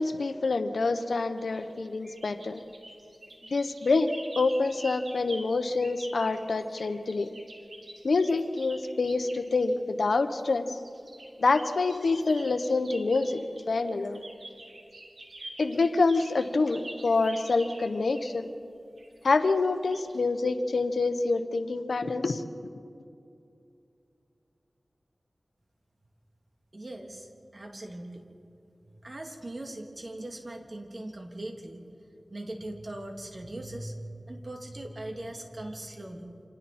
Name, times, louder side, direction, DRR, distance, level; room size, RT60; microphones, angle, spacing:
voice 1, 0.0-2.6 3.5-7.3 8.0-10.7 11.4-14.2 15.6-18.5 19.2-22.4, left 3 dB, 85° left, 9 dB, 1.1 m, -26 dB
sound 1, 1.4-9.7 10.8-18.4 19.0-19.6 19.9-20.2, right 1 dB, 70° right, 3.6 m, -47 dB
voice 2, 26.7-28.2 28.9-31.8 32.3-36.3, right 1 dB, 45° right, 2 dB, 3.0 m, -40 dB
29.5 x 26.0 x 4.4 m, 2.6 s
wide cardioid pair, 55°, 0 cm